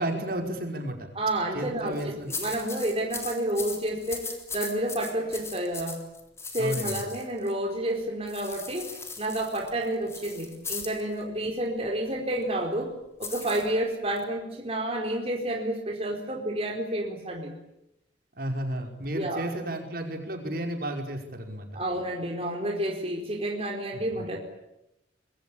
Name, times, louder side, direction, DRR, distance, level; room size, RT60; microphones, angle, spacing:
voice 1, 0.0-1.1 1.5-2.3 6.6-7.0 18.4-21.7, right 1 dB, 50° right, 4 dB, 5.2 m, -32 dB
voice 2, 1.1-6.0 6.5-12.9 13.2-17.5 19.1-19.5 21.7-24.4, right 1 dB, 30° right, 1 dB, 4.5 m, -30 dB
sound 1, 1.8-2.0 2.3-7.5 8.3-11.0 13.2-14.2, left 4 dB, 15° left, 3.6 m, -38 dB
26.0 x 23.0 x 8.7 m, 0.87 s
head